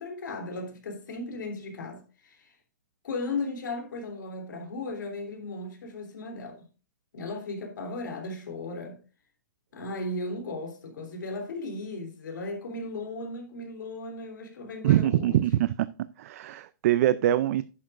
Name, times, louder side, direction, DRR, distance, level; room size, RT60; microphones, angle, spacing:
voice 1, 0.0-2.5 3.0-6.6 7.1-9.0 9.7-15.4, left 2 dB, 80° left, 3.2 m, -36 dB
voice 2, 14.8-15.7 16.2-17.6, right 13 dB, 50° right, 0.4 m, -23 dB
11.0 x 8.4 x 2.5 m
hypercardioid pair, 155°, 10 cm